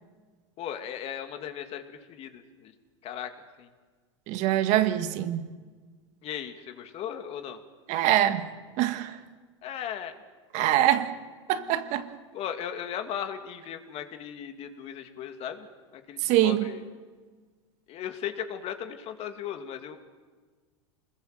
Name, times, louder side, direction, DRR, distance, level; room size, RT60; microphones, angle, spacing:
voice 1, 0.6-2.7 3.0-3.3 3.6-3.7 6.2-7.6 9.6-10.1 10.6-10.8 12.3-15.7 15.9-16.8 17.9-20.0, left 9 dB, 40° left, 2.5 m, -37 dB
voice 2, 4.3-5.4 7.9-8.5 8.8-9.2 10.5-11.1 11.5-12.1 16.2-16.6, right 13 dB, 50° right, 1.7 m, -24 dB
27.5 x 21.0 x 7.8 m
hypercardioid pair, 105°, 15 cm